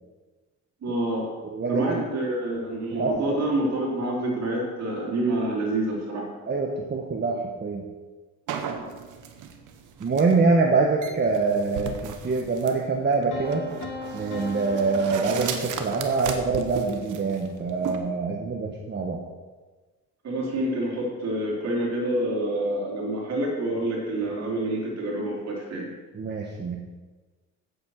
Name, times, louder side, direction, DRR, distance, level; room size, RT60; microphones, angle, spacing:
voice 1, 0.8-1.3 1.7-6.3 20.2-25.9, right 1 dB, 60° right, -2 dB, 3.8 m, -27 dB
voice 2, 1.4-2.0 3.0-3.3 6.5-7.3 7.6-7.8 10.0-13.7 14.1-19.2 26.1-26.8, right 4 dB, 35° right, 1 dB, 1.3 m, -25 dB
sound 1, 8.5-18.0, right 7 dB, 90° right, 1.2 m, -36 dB
Piano, 13.3-16.2, left 4 dB, 80° left, 2.4 m, -39 dB
8.3 x 8.0 x 6.6 m, 1.3 s
cardioid pair, 90°, 30 cm